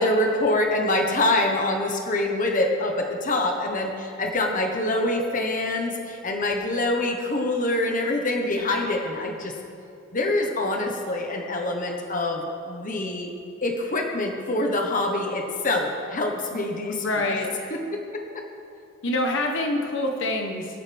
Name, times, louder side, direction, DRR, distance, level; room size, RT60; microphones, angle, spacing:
voice 1, 0.0-9.5 10.1-13.3 13.6-17.4 17.7-17.8 18.1-18.2, left 2 dB, 40° left, 2 dB, 1.3 m, -25 dB
voice 2, 16.9-17.5 19.0-20.7, left 2 dB, 65° left, 2 dB, 1.2 m, -26 dB
23.5 x 9.1 x 3.5 m, 2.6 s
head